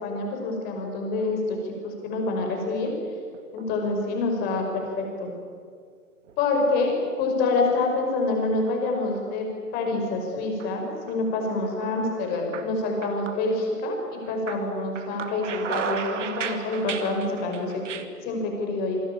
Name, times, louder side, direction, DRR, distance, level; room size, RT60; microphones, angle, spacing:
voice 1, 0.0-2.9 3.5-5.3 6.4-19.0, left 3 dB, 20° left, 2 dB, 5.5 m, -27 dB
sound 1, 2.2-2.9 3.3-4.0 4.3-4.9 5.3-5.4 6.3-7.3 7.7-8.7 9.1-9.2 10.1-10.7 11.1-11.3 11.6-13.9 14.2-18.1, right 7 dB, 50° right, 2.5 m, -36 dB
27.0 x 25.0 x 8.7 m, 2.1 s
hypercardioid pair, 155°, 48 cm